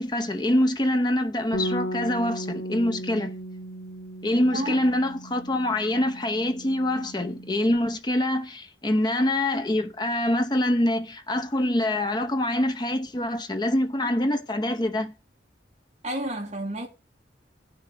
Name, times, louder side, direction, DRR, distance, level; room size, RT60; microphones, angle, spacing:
voice 1, 0.0-3.4 4.2-15.1, left 1 dB, 20° left, 0.7 m, -25 dB
Bass guitar, 1.5-7.8, equal, 85° left, 1.4 m, -36 dB
voice 2, 16.0-16.9, right 1 dB, 35° right, 2.7 m, -30 dB
18.0 x 6.1 x 3.4 m
head